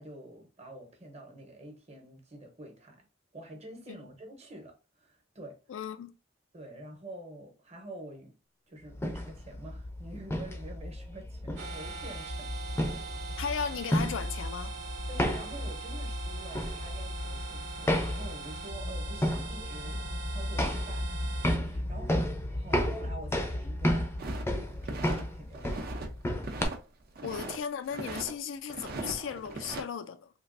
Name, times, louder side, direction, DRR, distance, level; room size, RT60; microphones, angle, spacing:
voice 1, 0.0-3.1 3.3-5.6 6.5-8.3 8.7-12.6 15.1-21.1 21.6-24.1 24.5-25.7 27.2-27.3, right 1 dB, 35° right, 0.9 m, -47 dB
voice 2, 5.7-6.1 13.4-14.8 27.2-30.3, left 7 dB, 75° left, 0.4 m, -36 dB
sound 1, 8.9-26.6, left 1 dB, 15° left, 0.5 m, -33 dB
sound 2, 11.6-21.6, right 4 dB, 90° right, 0.7 m, -43 dB
sound 3, 24.2-25.2 25.5-26.1 26.4-27.6 27.9-28.3 28.7-29.8, right 3 dB, 50° right, 0.6 m, -39 dB
3.2 x 2.4 x 2.5 m
head